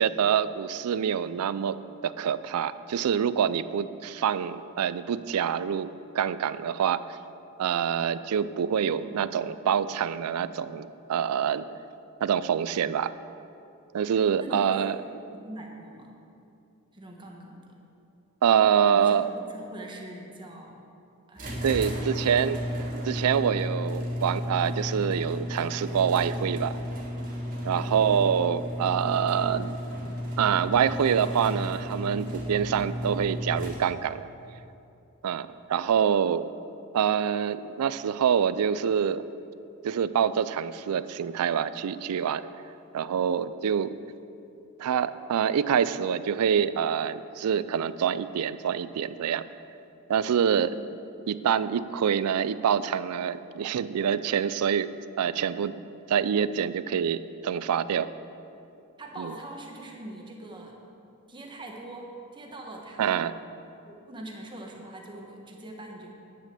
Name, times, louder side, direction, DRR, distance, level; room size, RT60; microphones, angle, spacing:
voice 1, 0.0-5.9 6.1-7.0 7.6-11.7 12.2-13.1 13.9-15.0 18.4-19.3 21.6-22.6 23.0-26.8 27.6-29.8 30.4-34.3 35.2-36.5 36.9-39.2 39.8-42.5 42.9-44.0 44.8-49.4 50.1-50.7 51.3-55.8 56.1-58.1 59.2-59.3 63.0-63.3, right 8 dB, 85° right, 15 dB, 0.4 m, -26 dB
voice 2, 9.0-9.4 14.4-14.9 15.4-16.1 16.9-17.7 18.9-20.7 21.3-22.3 50.7-50.9 59.0-60.8 61.3-63.2 63.8-66.1, right 1 dB, 20° right, 0 dB, 1.2 m, -43 dB
sound 1, 21.3-34.1, equal, 40° right, 2.0 m, -33 dB
9.8 x 6.2 x 6.7 m, 2.7 s
head